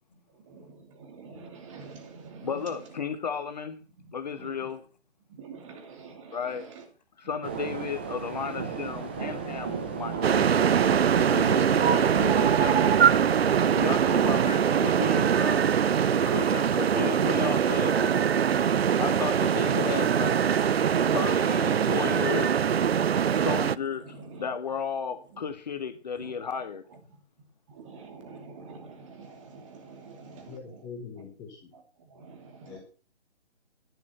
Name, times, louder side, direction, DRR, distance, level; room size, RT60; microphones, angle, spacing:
voice 1, 0.3-3.0 4.0-4.1 4.4-4.7 5.3-6.8 7.2-7.5 24.0-24.5 25.3-25.5 26.2-26.3 26.9-27.2 27.7-30.9 31.7-32.8, right 4 dB, 30° right, 4 dB, 2.6 m, -47 dB
voice 2, 2.4-3.8 4.1-4.8 6.3-6.7 7.2-10.4 11.2-12.8 13.7-15.6 16.3-18.2 19.0-20.4 21.1-22.6 23.3-26.8, left 6 dB, 40° left, 10 dB, 1.0 m, -34 dB
sound 1, 7.4-14.5, right 6 dB, 10° right, 0.6 m, -33 dB
sound 2, 10.2-23.7, right 8 dB, 65° right, 0.5 m, -23 dB
voice 3, 30.5-31.7 32.7-32.8, left 5 dB, 10° left, 1 dB, 1.1 m, -43 dB
11.0 x 6.3 x 7.5 m, 0.38 s
figure-of-eight pair, 145°, 34 cm